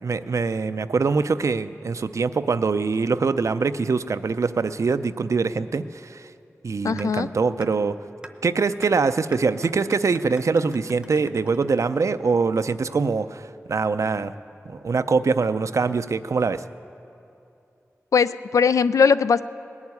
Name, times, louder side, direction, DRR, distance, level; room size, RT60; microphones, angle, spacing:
voice 1, 0.0-5.8 6.1-6.2 6.6-8.0 8.4-14.3 14.7-16.6, right 4 dB, 70° right, 12 dB, 0.5 m, -23 dB
voice 2, 6.8-7.3 18.1-19.4, left 6 dB, 85° left, 14 dB, 0.3 m, -19 dB
sound 1, 7.0-7.1 7.6-7.7 8.2-8.3 8.8-8.9 9.3-12.2, right 1 dB, 20° right, 0.7 m, -43 dB
19.0 x 7.2 x 9.5 m, 2.7 s
wide cardioid pair, 60°, 5 cm